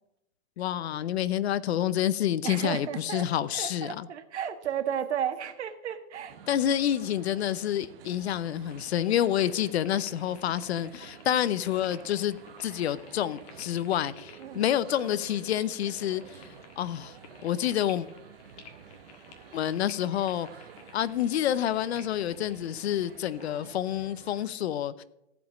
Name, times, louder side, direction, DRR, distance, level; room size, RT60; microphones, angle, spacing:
voice 1, 0.6-4.1 6.5-16.5 16.8-17.1 17.4-18.1 19.5-20.5 20.9-25.0, left 11 dB, 65° left, 0.7 m, -28 dB
voice 2, 2.4-3.3 3.5-6.4 14.4-14.7, right 9 dB, 75° right, 1.5 m, -33 dB
sound 1, 6.3-24.5, right 8 dB, 55° right, 1.1 m, -50 dB
sound 2, 8.7-23.6, left 5 dB, 35° left, 1.6 m, -53 dB
15.0 x 5.2 x 7.3 m
hypercardioid pair, 165°, 34 cm